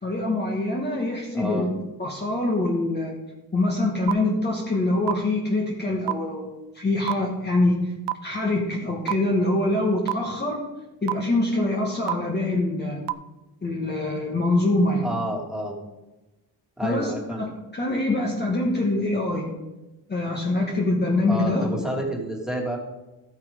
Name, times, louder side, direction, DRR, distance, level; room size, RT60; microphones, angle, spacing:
voice 1, 0.0-1.7 2.0-3.1 3.5-6.5 6.7-7.9 8.2-10.6 11.0-13.0 13.6-15.1 16.8-19.5 20.1-21.6, left 2 dB, 25° left, -2 dB, 1.6 m, -24 dB
voice 2, 1.3-1.7 15.0-15.8 16.8-17.4 21.3-22.8, right 1 dB, ahead, -2 dB, 2.4 m, -29 dB
sound 1, 4.1-4.2 5.1-5.2 6.1-6.2 7.1-7.2 8.1-8.2 9.1-9.2 10.1-10.2 11.1-11.2 12.1-12.2 13.1-13.2, right 18 dB, 75° right, 0.6 m, -23 dB
13.5 x 9.0 x 3.8 m, 1.1 s
cardioid pair, 135°, 42 cm